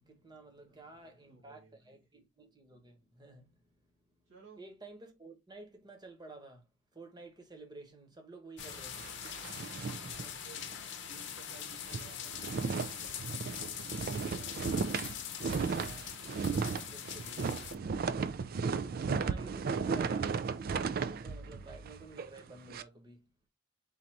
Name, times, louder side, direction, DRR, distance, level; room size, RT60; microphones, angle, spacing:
voice 1, 0.0-3.6 4.6-6.6 6.9-9.1 15.6-16.2 16.8-17.8 19.1-20.4 21.0-23.3, right 2 dB, 20° right, 1.2 m, -52 dB
voice 2, 0.6-2.0 4.3-4.6 9.6-10.6 11.1-14.8, right 3 dB, 70° right, 1.8 m, -58 dB
sound 1, 8.6-17.8, left 10 dB, 65° left, 0.8 m, -43 dB
sound 2, 8.6-10.9 11.2-11.3 11.7-22.8, right 5 dB, 50° right, 0.4 m, -35 dB
3.9 x 2.6 x 4.6 m
head